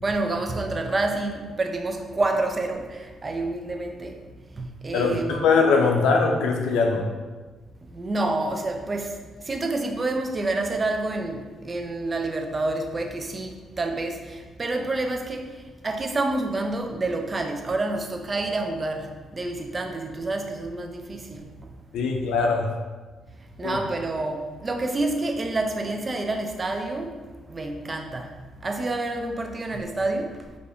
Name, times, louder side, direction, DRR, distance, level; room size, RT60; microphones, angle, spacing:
voice 1, 0.0-4.1 4.6-5.4 7.9-9.1 9.5-15.5 15.8-19.0 19.3-21.5 23.6-27.1 27.5-28.3 28.6-30.3, right 2 dB, 30° right, 4 dB, 0.4 m, -28 dB
voice 2, 4.9-7.1 21.9-22.7 23.6-23.8, left 4 dB, 90° left, 2 dB, 0.4 m, -21 dB
3.3 x 2.5 x 3.5 m, 1.3 s
cardioid pair, 90°, 0 cm